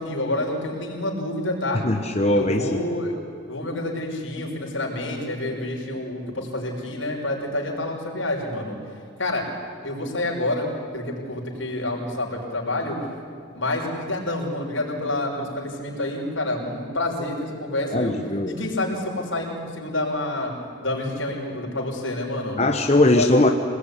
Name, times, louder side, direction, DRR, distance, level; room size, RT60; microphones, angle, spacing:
voice 1, 0.0-1.8 2.3-3.2 3.5-8.8 9.2-9.5 9.8-10.7 10.9-13.0 13.5-18.1 18.5-20.5 20.8-22.6 23.1-23.3, left 1 dB, 75° left, -1 dB, 6.0 m, -28 dB
voice 2, 1.8-2.8 17.9-18.6 22.6-23.5, left 1 dB, 35° left, 4 dB, 1.1 m, -20 dB
26.5 x 19.5 x 10.0 m, 2.3 s
head